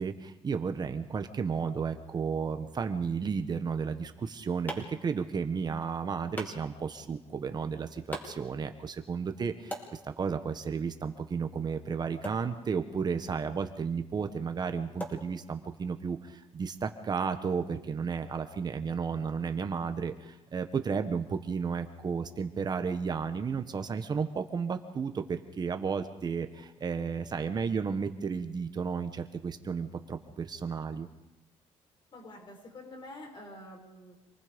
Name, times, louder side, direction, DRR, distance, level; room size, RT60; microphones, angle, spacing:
voice 1, 0.0-31.1, right 6 dB, 40° right, 8 dB, 1.4 m, -33 dB
sound 1, 4.0-15.9, equal, 15° left, 4.7 m, -47 dB
voice 2, 32.1-34.2, left 1 dB, 45° left, 1 dB, 6.7 m, -48 dB
27.0 x 19.5 x 5.3 m, 0.97 s
cardioid pair, 105°, 11 cm